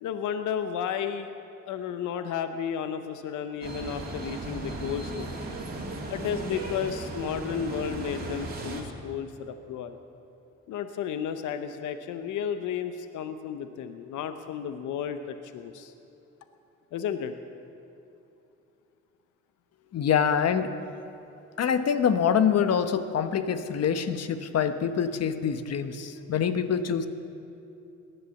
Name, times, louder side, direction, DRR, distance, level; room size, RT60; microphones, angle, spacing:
voice 1, 0.0-1.3 1.7-5.3 6.1-10.0 10.7-15.9 16.9-17.3, left 8 dB, 80° left, 9 dB, 0.8 m, -33 dB
sound 1, 3.6-8.8, right 2 dB, 30° right, 2.8 m, -36 dB
voice 2, 19.9-20.7 21.6-27.1, left 7 dB, 55° left, 10 dB, 1.0 m, -25 dB
18.0 x 11.0 x 7.0 m, 2.8 s
cardioid pair, 90°, 30 cm